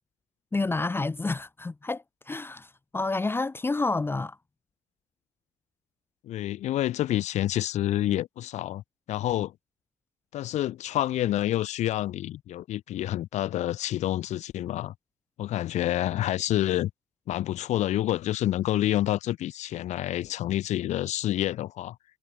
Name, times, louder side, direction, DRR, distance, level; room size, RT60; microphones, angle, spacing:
voice 1, 0.5-4.4, left 3 dB, 20° left, 0.9 m, -29 dB
voice 2, 6.2-8.8 9.1-9.5 10.3-14.9 15.4-16.9 17.3-21.9, left 13 dB, 70° left, 1.8 m, -28 dB
supercardioid pair, 80°, 12 cm